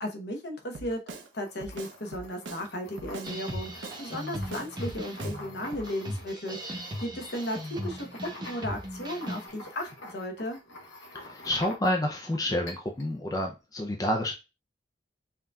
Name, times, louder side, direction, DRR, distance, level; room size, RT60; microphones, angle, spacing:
voice 1, 0.0-1.0 1.3-8.1 8.4-10.6, equal, 60° left, 3 dB, 0.9 m, -35 dB
Drum kit, 0.7-1.3 1.6-2.7 3.0-4.0 4.3-5.4 5.7-5.9, right 3 dB, 85° right, 0.6 m, -42 dB
sound 1, 1.2-12.2 12.7-13.1, left 1 dB, 80° left, 1.2 m, -48 dB
sound 2, 3.2-9.5, equal, 20° right, 0.8 m, -38 dB
voice 2, 11.1-14.3, left 1 dB, 20° left, 2 dB, 0.4 m, -29 dB
5.5 x 2.6 x 2.3 m, 0.28 s
head